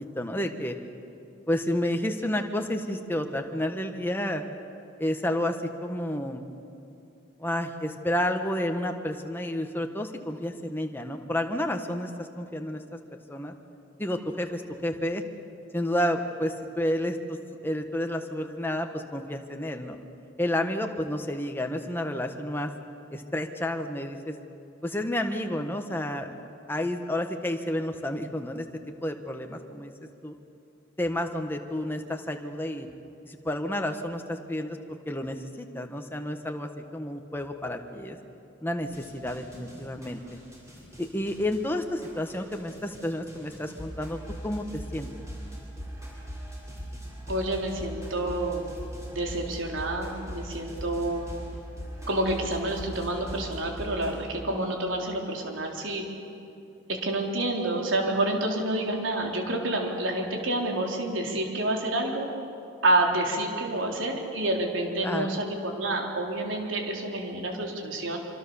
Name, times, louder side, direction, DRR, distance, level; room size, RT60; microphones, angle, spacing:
voice 1, 0.1-0.7 1.5-4.4 5.0-6.5 7.4-13.5 14.0-15.2 15.7-20.0 20.4-22.7 23.1-24.4 24.8-26.3 26.7-29.9 30.2-30.3 31.0-32.9 33.2-34.8 35.1-38.2 38.6-40.2 41.0-44.2 44.4-45.1 65.0-65.4, left 1 dB, 10° left, 4 dB, 1.4 m, -30 dB
sound 1, 38.8-54.2, equal, 15° right, 6.0 m, -40 dB
voice 2, 47.3-48.6 49.2-51.3 52.1-56.0 56.9-62.3 62.8-68.2, right 1 dB, 85° right, 1 dB, 3.8 m, -28 dB
25.5 x 25.5 x 7.1 m, 2.6 s
head